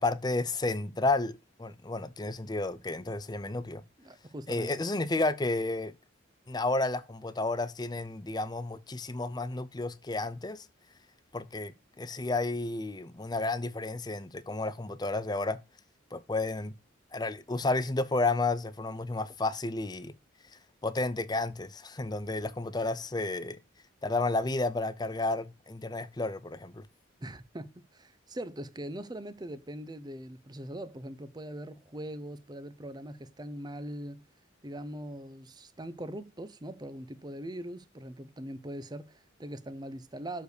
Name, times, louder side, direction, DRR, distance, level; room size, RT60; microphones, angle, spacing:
voice 1, 0.0-1.3 1.6-3.8 4.5-5.9 6.5-10.7 11.3-15.6 16.1-16.7 17.1-20.1 20.8-23.6 24.0-26.8, left 2 dB, 20° left, 0.6 m, -31 dB
voice 2, 4.0-4.7 27.2-34.2 34.6-40.4, right 1 dB, 20° right, 0.6 m, -41 dB
6.5 x 5.2 x 6.6 m
head